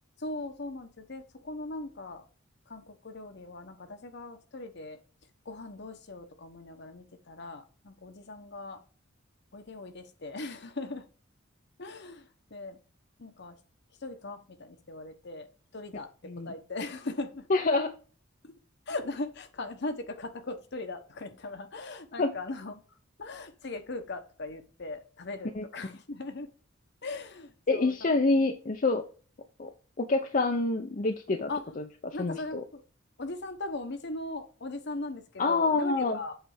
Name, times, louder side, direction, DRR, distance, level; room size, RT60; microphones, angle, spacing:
voice 1, 0.2-2.2 2.7-5.0 5.4-8.8 9.5-11.1 11.8-12.8 13.2-13.6 14.0-15.5 15.7-17.5 18.4-18.6 18.9-26.5 27.0-28.1 31.5-31.7 32.1-32.8 33.2-36.4, left 2 dB, 55° left, 8 dB, 1.0 m, -39 dB
voice 2, 17.5-17.9 22.2-22.3 25.6-25.7 27.7-29.0 29.6-29.7 30.0-31.5 32.2-32.6 35.4-36.2, left 3 dB, 40° left, 4 dB, 0.6 m, -26 dB
8.1 x 3.4 x 4.8 m, 0.38 s
head